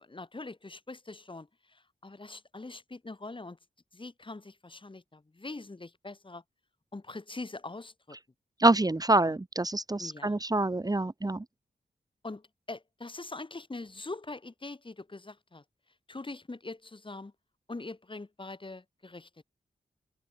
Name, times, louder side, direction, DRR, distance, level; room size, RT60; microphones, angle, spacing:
voice 1, 0.0-3.6 3.9-6.4 6.9-8.2 9.2-9.3 10.0-10.4 12.2-15.6 16.1-17.3 17.7-19.4, left 3 dB, 30° left, 7.4 m, -43 dB
voice 2, 8.6-11.4, right 2 dB, 25° right, 2.2 m, -26 dB
wide cardioid pair, 85°, 16 cm